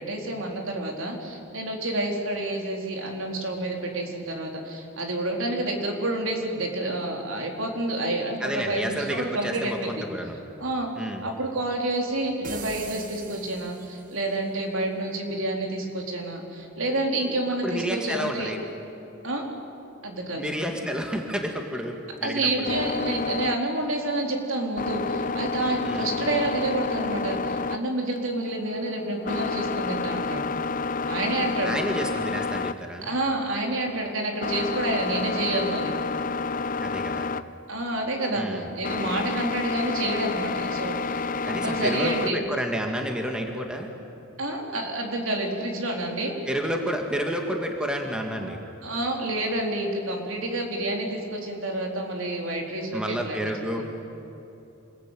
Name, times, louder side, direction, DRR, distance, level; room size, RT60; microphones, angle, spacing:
voice 1, 0.0-10.1 10.6-10.9 11.2-18.5 19.2-19.5 20.0-20.6 22.2-30.5 31.1-31.8 33.0-35.9 37.7-42.4 44.4-46.3 48.8-53.8, right 1 dB, 65° right, 1 dB, 4.2 m, -29 dB
voice 2, 8.4-10.4 11.0-11.2 17.6-18.6 20.4-22.8 25.8-26.1 31.6-33.1 36.8-37.3 38.3-38.7 41.4-43.9 46.5-48.6 52.9-53.8, equal, 5° right, 2 dB, 2.0 m, -30 dB
sound 1, 12.4-14.3, right 4 dB, 40° right, 1.3 m, -39 dB
sound 2, 22.6-42.3, left 4 dB, 40° left, 0.6 m, -30 dB
27.0 x 21.5 x 9.3 m, 2.9 s
head